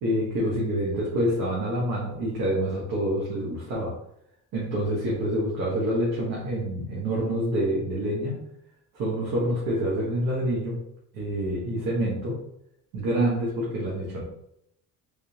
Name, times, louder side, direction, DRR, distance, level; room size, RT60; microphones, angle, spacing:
voice 1, 0.0-3.9 4.5-8.4 8.9-10.8 11.1-12.4 12.9-14.2, right 1 dB, 85° right, -5 dB, 1.2 m, -27 dB
3.5 x 3.3 x 2.9 m, 0.77 s
cardioid pair, 160°, 34 cm